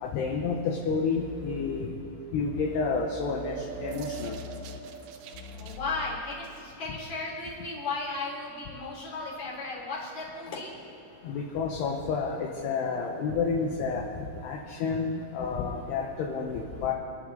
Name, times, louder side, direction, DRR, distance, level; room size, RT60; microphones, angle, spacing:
voice 1, 0.0-1.9 2.3-4.4 11.2-14.0 14.4-16.9, left 5 dB, 70° left, -1 dB, 2.7 m, -30 dB
sound 1, 1.2-1.9 2.5-4.8 5.3-6.2, left 6 dB, 90° left, 3.6 m, -44 dB
sound 2, 2.5-5.8, right 8 dB, 80° right, 2.7 m, -42 dB
voice 2, 5.5-10.7, left 3 dB, 40° left, -4 dB, 4.0 m, -35 dB
27.5 x 11.0 x 4.0 m, 2.7 s
omnidirectional pair, 5.7 m